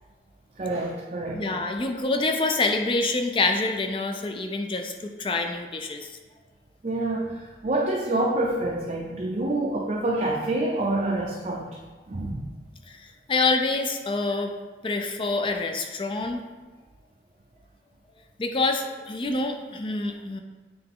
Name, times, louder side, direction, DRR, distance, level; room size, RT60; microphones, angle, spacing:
voice 1, 0.6-1.5 6.8-11.7 12.1-12.4, right 2 dB, 40° right, -3 dB, 0.5 m, -27 dB
voice 2, 1.3-6.2 12.9-13.0 13.3-14.5 14.8-16.4 18.4-20.4, left 3 dB, 30° left, 5 dB, 0.4 m, -26 dB
7.9 x 3.3 x 3.6 m, 1.3 s
head